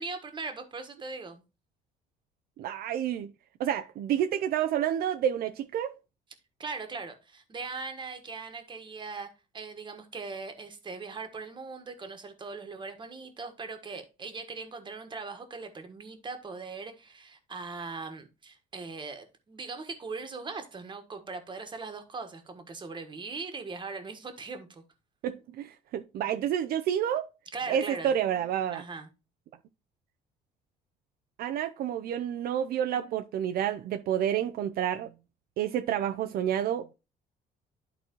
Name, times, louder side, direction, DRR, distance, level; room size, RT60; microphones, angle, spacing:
voice 1, 0.0-1.4 6.6-24.8 27.5-28.1 28.7-29.1, right 4 dB, 30° right, 1.4 m, -40 dB
voice 2, 2.6-3.3 3.6-5.9 25.2-27.3 27.7-28.8 31.4-35.1 35.6-36.9, right 10 dB, 65° right, 0.5 m, -29 dB
11.5 x 4.1 x 3.0 m
cardioid pair, 110°, 17 cm